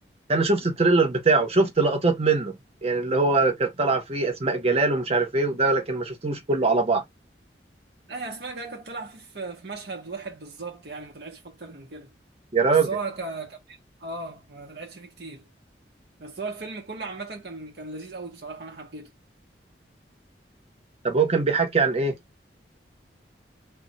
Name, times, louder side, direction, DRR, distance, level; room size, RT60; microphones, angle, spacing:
voice 1, 0.3-2.5 2.8-7.0 12.5-12.9 21.0-22.2, right 3 dB, 35° right, 0.8 m, -22 dB
voice 2, 8.1-12.1 12.7-15.4 16.2-19.1, right 3 dB, 65° right, 0.9 m, -37 dB
2.3 x 2.2 x 3.9 m
head